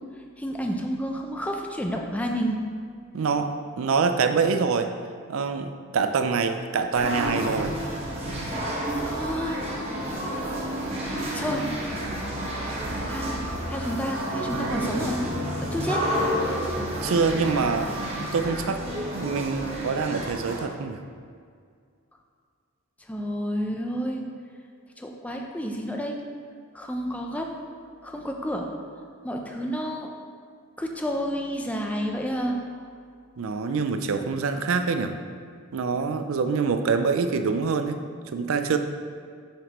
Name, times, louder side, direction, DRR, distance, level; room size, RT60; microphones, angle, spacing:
voice 1, 0.4-2.6 9.0-9.7 11.3-11.7 13.1-13.4 13.7-15.2 15.6-16.0 23.1-24.2 25.0-26.2 26.7-27.5 28.0-28.7 29.2-30.1 30.8-32.6, equal, 5° left, 1 dB, 0.5 m, -30 dB
voice 2, 3.1-4.9 5.3-7.8 17.0-17.9 18.2-18.8 19.1-21.0 33.4-35.2 35.7-38.0 38.3-38.8, right 5 dB, 70° right, 8 dB, 0.4 m, -25 dB
sound 1, 6.9-20.6, equal, 30° right, 1.1 m, -30 dB
7.3 x 5.1 x 3.0 m, 2.1 s
head